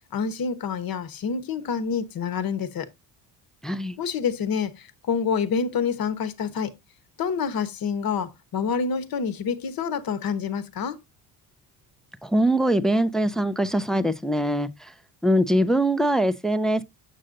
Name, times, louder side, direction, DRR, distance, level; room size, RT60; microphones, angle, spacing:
voice 1, 0.1-2.9 4.0-6.7 7.2-11.0, left 6 dB, 50° left, 1.1 m, -27 dB
voice 2, 3.6-4.0 12.2-14.9 15.2-16.8, right 1 dB, ahead, 0.3 m, -22 dB
7.7 x 6.4 x 2.5 m
cardioid pair, 100°, 44 cm